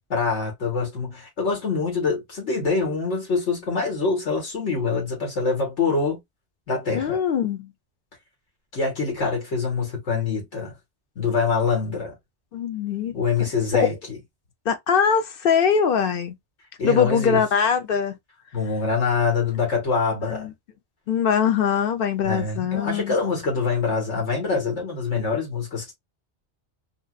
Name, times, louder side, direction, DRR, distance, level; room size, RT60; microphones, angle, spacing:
voice 1, 0.1-6.2 6.7-7.2 8.7-10.7 11.2-12.1 13.1-14.2 16.8-17.4 18.5-20.5 22.2-25.9, left 4 dB, 80° left, 2.1 m, -25 dB
voice 2, 6.9-7.7 12.5-13.2 14.7-16.3 16.8-18.2 20.2-20.5 21.1-23.1, left 7 dB, 55° left, 0.8 m, -22 dB
4.0 x 2.4 x 2.3 m
omnidirectional pair, 1.2 m